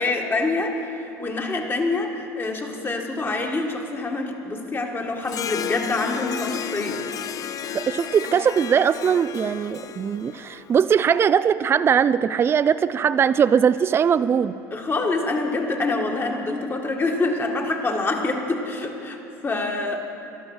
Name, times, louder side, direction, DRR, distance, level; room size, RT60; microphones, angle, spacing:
voice 1, 0.0-7.0 14.7-20.1, left 3 dB, 25° left, 3 dB, 1.7 m, -26 dB
Harp, 5.2-10.9, left 9 dB, 40° left, 0.5 m, -33 dB
voice 2, 7.7-14.6, right 7 dB, 30° right, 14 dB, 0.3 m, -20 dB
12.5 x 12.0 x 6.3 m, 2.9 s
hypercardioid pair, 80°, 9 cm